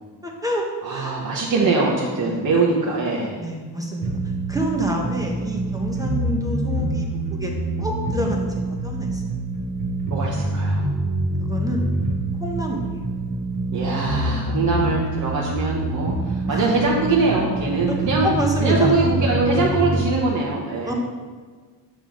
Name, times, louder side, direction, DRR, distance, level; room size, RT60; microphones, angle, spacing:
voice 1, 0.2-1.2 1.6-1.8 2.2-2.5 3.4-4.1 4.5-7.5 7.8-9.2 11.4-11.9 12.4-12.9 16.5-16.7 17.9-18.0 18.2-19.0 20.8-20.9, equal, 10° right, 0 dB, 1.0 m, -28 dB
voice 2, 0.8-3.4 10.1-10.9 13.7-18.3 18.6-20.9, right 3 dB, 45° right, -4 dB, 1.1 m, -22 dB
sound 1, 4.0-20.0, right 2 dB, 65° right, 1.7 m, -25 dB
7.5 x 7.0 x 3.8 m, 1.5 s
cardioid pair, 130°, 44 cm